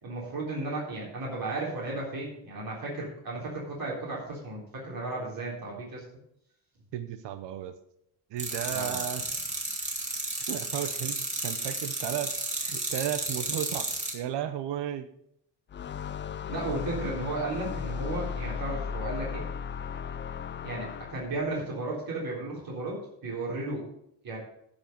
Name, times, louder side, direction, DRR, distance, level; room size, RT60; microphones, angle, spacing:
voice 1, 0.0-6.0 8.7-9.0 16.5-19.4 20.6-23.0 23.2-23.8 24.2-24.4, right 2 dB, 50° right, -4 dB, 3.9 m, -34 dB
voice 2, 6.9-7.7 8.3-9.2 10.4-15.1, right 11 dB, 75° right, 9 dB, 0.9 m, -34 dB
sound 1, 8.4-14.1, right 2 dB, 15° right, 2.9 m, -33 dB
sound 2, 15.7-21.4, left 7 dB, 30° left, 0.4 m, -36 dB
15.5 x 5.3 x 5.2 m, 0.74 s
cardioid pair, 130°, 42 cm